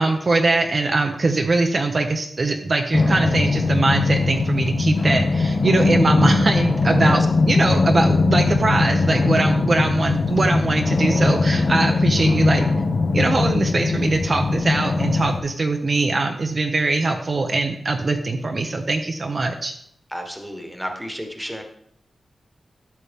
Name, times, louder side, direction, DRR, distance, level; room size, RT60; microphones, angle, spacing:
voice 1, 0.0-12.6 13.1-19.7, right 3 dB, 40° right, 4 dB, 0.8 m, -22 dB
sound 1, 2.9-15.4, left 3 dB, 45° left, 1.1 m, -20 dB
voice 2, 20.1-21.6, equal, ahead, 3 dB, 1.4 m, -32 dB
12.5 x 7.4 x 3.6 m, 0.67 s
wide cardioid pair, 145°, 0 cm